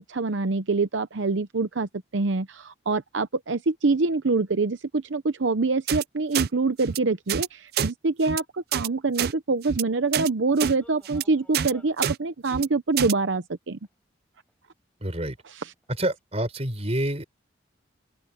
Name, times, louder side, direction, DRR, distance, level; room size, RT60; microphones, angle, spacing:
voice 1, 0.0-13.8 15.6-15.7, right 3 dB, 80° right, 0.8 m, -25 dB
sound 1, 5.9-6.0 6.3-6.5 6.8-7.0 7.3-7.5 7.7-7.9 8.2-8.4 8.7-8.9 9.2-9.3 9.6-9.8 10.1-10.3 10.6-10.7 11.0-11.2 11.5-11.7 12.0-12.2 12.5-12.7 13.0-13.1, right 8 dB, 55° right, 0.4 m, -27 dB
sound 2, 10.7-12.0 13.0-13.1 13.8-13.9 14.4-14.5 15.1-15.2 15.7-15.9 16.2-16.3, left 1 dB, 5° left, 7.4 m, -55 dB
voice 2, 15.0-15.4 15.9-17.2, right 1 dB, 35° right, 5.2 m, -27 dB
open air
head